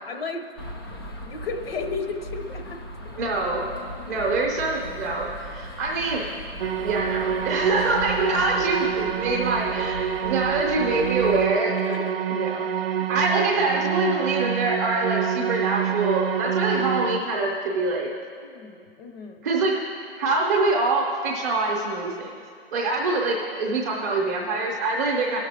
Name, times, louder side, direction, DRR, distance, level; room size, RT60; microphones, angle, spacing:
voice 1, 0.0-0.4 1.2-2.8 11.8-12.1 18.4-19.5, left 4 dB, 65° left, 5 dB, 1.0 m, -33 dB
sound 1, 0.6-11.5, equal, 25° left, 0.4 m, -38 dB
voice 2, 3.1-3.6 4.1-6.3 6.8-11.8 12.3-18.1 19.4-22.3 22.7-25.4, right 3 dB, 15° right, -2 dB, 0.7 m, -25 dB
sound 2, 6.6-17.2, right 9 dB, 65° right, 0.6 m, -27 dB
18.0 x 6.4 x 3.4 m, 2.2 s
hypercardioid pair, 175°, 31 cm